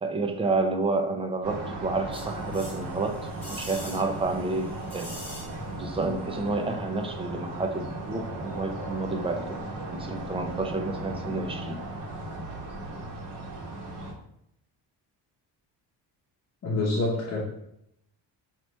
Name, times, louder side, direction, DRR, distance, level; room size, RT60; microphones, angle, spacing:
voice 1, 0.0-3.2 3.5-5.1 5.7-9.6 9.9-11.8, right 3 dB, 15° right, 5 dB, 0.4 m, -30 dB
sound 1, 1.4-14.1, right 2 dB, 80° right, 1.3 m, -37 dB
sound 2, 2.1-5.9 6.2-6.3, left 1 dB, 5° left, 1.8 m, -44 dB
voice 2, 16.6-17.4, left 2 dB, 40° left, -4 dB, 1.0 m, -26 dB
5.4 x 3.0 x 3.2 m, 0.76 s
cardioid pair, 140°, 41 cm